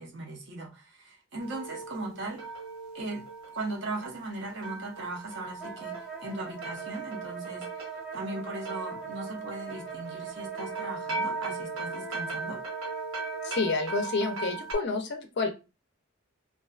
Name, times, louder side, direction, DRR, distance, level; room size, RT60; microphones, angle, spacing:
voice 1, 0.0-2.4 2.9-3.2 3.5-12.6, right 2 dB, 55° right, 0.6 m, -38 dB
sound 1, 1.4-14.7, right 3 dB, 75° right, 1.2 m, -39 dB
Wind instrument woodwind instrument, 5.6-13.8, right 7 dB, 5° right, 0.6 m, -41 dB
voice 2, 13.4-15.5, left 3 dB, 50° left, 0.4 m, -29 dB
2.4 x 2.2 x 2.3 m
head